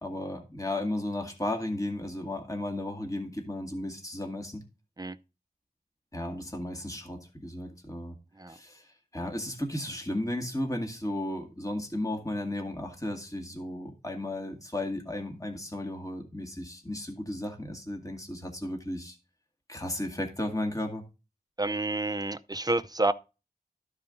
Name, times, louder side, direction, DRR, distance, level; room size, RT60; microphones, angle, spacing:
voice 1, 0.0-4.6 6.1-8.2 8.5-19.2 19.7-21.0, left 1 dB, 20° left, 2.1 m, -34 dB
voice 2, 21.6-23.1, right 2 dB, 25° right, 0.6 m, -29 dB
13.0 x 4.9 x 3.8 m
wide cardioid pair, 50°, 16 cm